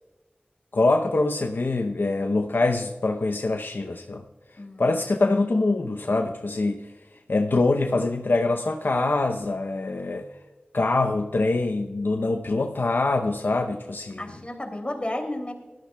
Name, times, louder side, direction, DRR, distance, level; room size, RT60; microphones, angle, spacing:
voice 1, 0.7-4.2 4.8-6.8 7.3-10.3 10.7-14.2, left 2 dB, 75° left, 4 dB, 0.7 m, -24 dB
voice 2, 4.6-5.1 14.2-15.5, left 1 dB, 35° left, 3 dB, 2.8 m, -33 dB
19.5 x 13.0 x 2.3 m, 1.2 s
wide cardioid pair, 60°, 3 cm